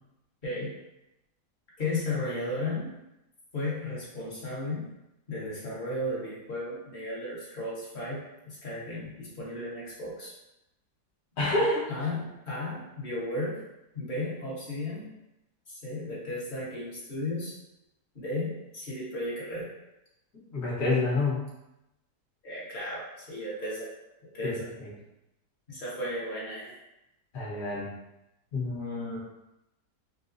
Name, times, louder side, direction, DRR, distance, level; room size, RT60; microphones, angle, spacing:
voice 1, 0.4-0.8 1.8-2.9 3.5-4.9 5.3-10.3 11.9-13.6 13.9-15.1 15.7-17.6 18.1-19.7 22.4-23.9 24.2-24.7 25.7-26.7, left 2 dB, 35° left, -7 dB, 0.9 m, -34 dB
voice 2, 11.4-11.9 20.5-21.4 24.4-24.5 24.8-24.9 27.3-27.9 28.5-29.2, left 2 dB, 55° left, -6 dB, 1.5 m, -28 dB
4.7 x 2.0 x 2.5 m, 0.90 s
omnidirectional pair, 1.8 m